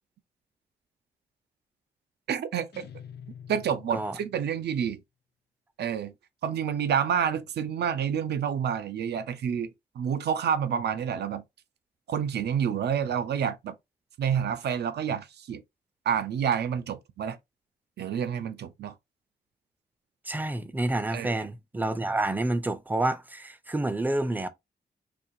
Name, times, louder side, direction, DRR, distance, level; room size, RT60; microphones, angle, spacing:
voice 1, 2.3-2.8 3.5-5.0 5.8-6.1 6.4-11.4 12.1-13.7 14.2-15.6 16.1-17.4 18.0-18.9 21.1-21.4, right 8 dB, 85° right, 0.5 m, -28 dB
sound 1, 2.7-4.8, left 8 dB, 80° left, 0.5 m, -47 dB
voice 2, 20.3-24.5, right 2 dB, 10° right, 0.4 m, -29 dB
4.2 x 2.5 x 2.6 m
wide cardioid pair, 150°, 17 cm